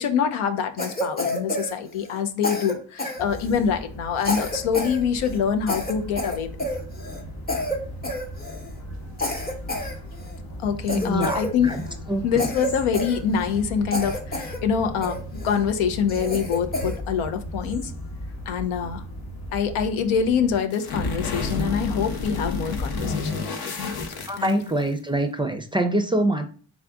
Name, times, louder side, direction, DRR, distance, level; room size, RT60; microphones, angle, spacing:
voice 1, 0.0-6.5 10.6-11.8 12.2-17.9 18.5-19.0 19.5-24.0 24.4-24.6, left 7 dB, 85° left, 0.6 m, -25 dB
Cough, 0.8-2.2 2.4-3.7 4.2-5.0 5.2-5.4 5.7-7.2 7.5-7.8 8.0-8.7 9.2-10.4 10.9-11.9 12.4-13.6 13.9-14.6 15.0-15.6 16.1-17.0, left 1 dB, 20° left, 0.9 m, -29 dB
sound 1, 3.2-20.6, equal, 70° left, 1.1 m, -37 dB
voice 2, 10.9-11.8 12.1-12.4 24.3-26.5, right 1 dB, 10° right, 0.4 m, -25 dB
sound 2, 20.7-24.9, left 3 dB, 50° left, 0.8 m, -29 dB
3.6 x 2.4 x 3.4 m
supercardioid pair, 40°, 48 cm